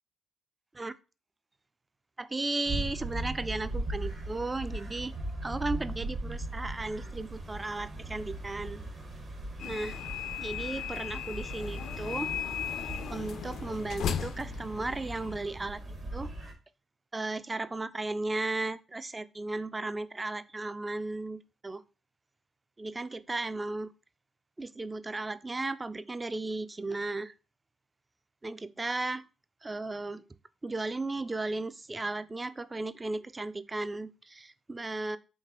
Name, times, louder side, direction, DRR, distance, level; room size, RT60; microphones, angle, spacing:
voice 1, 2.2-5.1 5.4-8.8 9.6-10.0 10.4-12.3 13.1-15.8 16.1-16.3 17.1-21.8 22.8-23.9 24.6-27.3 28.4-29.3 29.6-30.2 30.6-35.2, right 2 dB, 25° right, 0.3 m, -35 dB
sound 1, 2.7-16.5, right 1 dB, 50° right, 1.2 m, -39 dB
sound 2, 9.6-15.4, left 9 dB, 70° left, 0.3 m, -37 dB
4.5 x 2.9 x 3.0 m
supercardioid pair, 65°, 0 cm